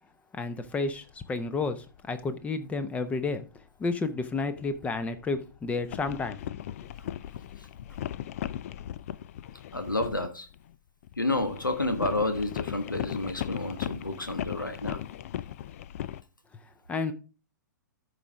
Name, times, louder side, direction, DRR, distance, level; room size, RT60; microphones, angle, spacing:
voice 1, 0.3-6.4 16.9-17.1, left 3 dB, 15° left, 0.8 m, -31 dB
sound 1, 0.8-1.1 1.6-2.4 2.8-3.3 4.4-10.7 11.0-16.2, left 11 dB, 45° left, 0.4 m, -38 dB
voice 2, 9.7-10.5 11.2-15.0, left 2 dB, 85° left, 1.3 m, -30 dB
13.5 x 4.9 x 3.5 m
figure-of-eight pair, 110°, 10 cm